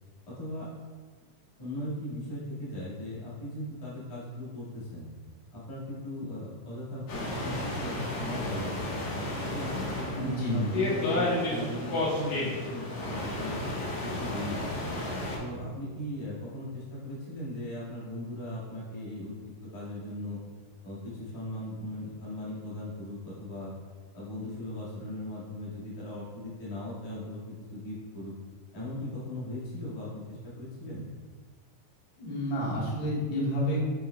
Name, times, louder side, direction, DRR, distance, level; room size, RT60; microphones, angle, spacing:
voice 1, 0.2-0.7 1.6-5.1 5.5-9.0 9.4-13.6 14.0-14.9 15.4-20.4 20.8-23.7 24.1-28.3 28.7-31.1, left 1 dB, 30° left, -9 dB, 0.6 m, -38 dB
sound 1, 7.1-15.4, left 1 dB, 65° left, 2.4 m, -32 dB
voice 2, 10.2-10.6 32.2-33.8, equal, 80° left, -6 dB, 3.2 m, -29 dB
6.9 x 6.1 x 2.3 m, 1.5 s
omnidirectional pair, 4.0 m